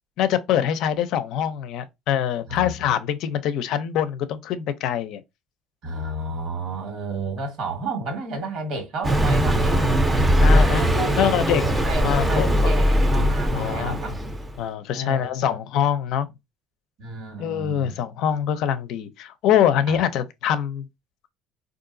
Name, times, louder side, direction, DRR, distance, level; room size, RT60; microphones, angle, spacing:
voice 1, 0.2-5.2 10.4-10.9 11.2-11.6 12.0-12.7 13.5-14.0 14.6-16.3 17.4-20.9, left 9 dB, 70° left, 0.5 m, -24 dB
voice 2, 2.5-2.9 5.8-9.8 10.3-11.3 11.6-14.2 14.9-15.5 17.0-17.9 19.9-20.0, right 2 dB, 65° right, 1.5 m, -32 dB
Car passing by, 9.0-14.6, equal, 15° right, 0.6 m, -20 dB
3.7 x 2.5 x 2.6 m
cardioid pair, 100°, 0 cm